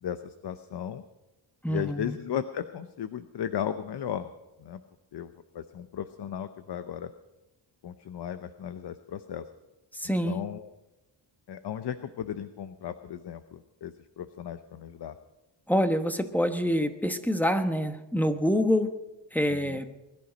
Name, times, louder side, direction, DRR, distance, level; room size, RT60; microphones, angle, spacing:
voice 1, 0.0-1.0 1.7-4.3 4.6-4.8 5.1-7.1 7.8-9.5 10.3-10.7 11.5-15.2 19.6-19.8, left 9 dB, 60° left, 10 dB, 0.8 m, -36 dB
voice 2, 1.6-2.2 9.9-10.4 15.7-18.9 19.3-19.9, equal, 5° left, 8 dB, 1.1 m, -26 dB
21.0 x 11.5 x 5.2 m, 1.0 s
cardioid pair, 105°, 47 cm